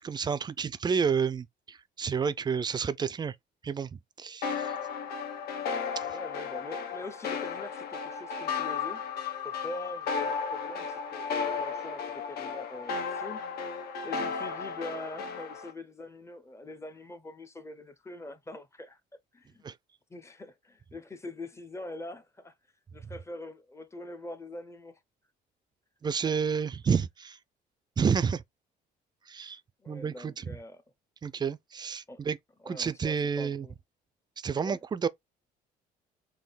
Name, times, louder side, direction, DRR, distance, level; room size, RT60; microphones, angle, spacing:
voice 1, 0.0-3.3 3.6-3.9 4.2-4.7 6.0-6.1 19.6-19.7 26.0-27.4 28.0-28.4 29.3-29.6 29.9-30.6 31.2-32.4 32.7-33.7 34.4-35.1, right 6 dB, 25° right, 0.4 m, -30 dB
sound 1, 4.4-15.7, left 5 dB, 65° left, 1.1 m, -34 dB
voice 2, 6.1-9.0 9.4-13.4 14.0-19.0 19.3-19.7 20.1-22.5 22.9-25.0 26.3-26.4 29.8-30.8 32.1-32.2 32.6-33.7 34.6-34.8, left 2 dB, 15° left, 0.7 m, -43 dB
3.6 x 2.7 x 4.0 m
cardioid pair, 110°, 17 cm